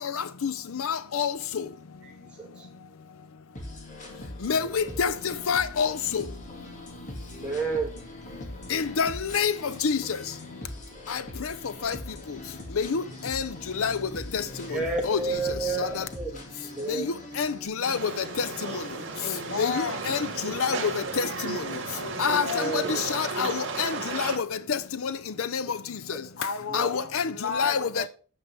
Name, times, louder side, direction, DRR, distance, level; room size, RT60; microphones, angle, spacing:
voice 1, 0.8-1.3 4.4-5.1 5.5-5.9 8.7-9.5 9.8-10.0 11.8-11.9 12.8-13.0 13.3-13.4 13.8-13.9 15.1-15.2 17.4-17.5 17.8-18.0 20.1-20.2 20.6-20.8 21.2-21.3 22.2-22.4 23.2-23.5 23.8-23.9 24.2-24.3 25.5-25.6 26.7-26.9 27.1-27.2 27.6-27.8, left 6 dB, 80° left, 0.6 m, -25 dB
sound 1, 3.5-17.7, left 1 dB, 35° left, 2.1 m, -42 dB
voice 2, 7.3-7.9 14.4-17.1 18.7-18.8 22.5-23.0 26.7-26.9, right 4 dB, 5° right, 2.9 m, -31 dB
sound 2, 17.8-24.4, right 3 dB, 60° right, 2.1 m, -34 dB
voice 3, 19.2-20.2 22.0-22.9 26.4-28.1, left 5 dB, 55° left, 0.9 m, -34 dB
9.1 x 5.7 x 5.4 m
head